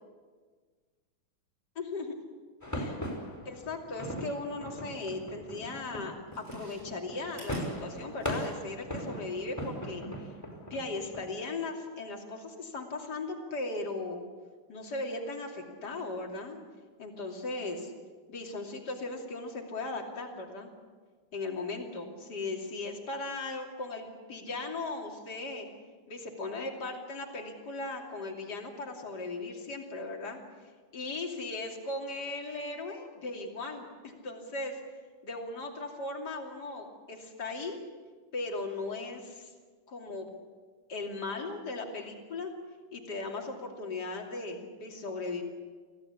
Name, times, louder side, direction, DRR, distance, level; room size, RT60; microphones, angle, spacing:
voice 1, 1.8-2.1 2.7-3.0 3.4-10.3 10.7-14.2 14.7-16.6 17.0-17.9 18.3-20.7 21.3-25.7 26.1-30.4 30.9-34.8 35.2-37.8 38.3-39.5 39.9-40.3 40.9-42.5 42.9-45.4, left 3 dB, 50° left, 1 dB, 3.4 m, -37 dB
sound 1, 2.6-11.3, equal, 5° left, 4.8 m, -39 dB
Chewing mastication, 6.2-8.8 9.2-9.3, right 2 dB, 90° right, 7.2 m, -53 dB
25.5 x 16.5 x 8.5 m, 1.5 s
omnidirectional pair, 2.3 m